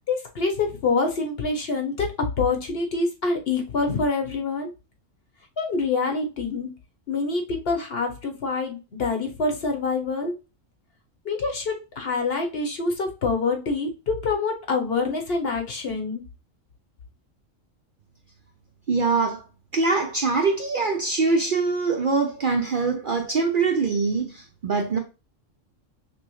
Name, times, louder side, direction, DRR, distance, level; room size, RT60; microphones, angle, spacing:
voice 1, 0.1-2.1 2.4-4.7 5.6-6.7 7.1-10.3 11.2-16.2, left 4 dB, 50° left, 1.0 m, -26 dB
voice 2, 18.9-19.4 19.7-25.0, right 4 dB, 55° right, 0.6 m, -23 dB
6.0 x 2.1 x 3.0 m
omnidirectional pair, 1.4 m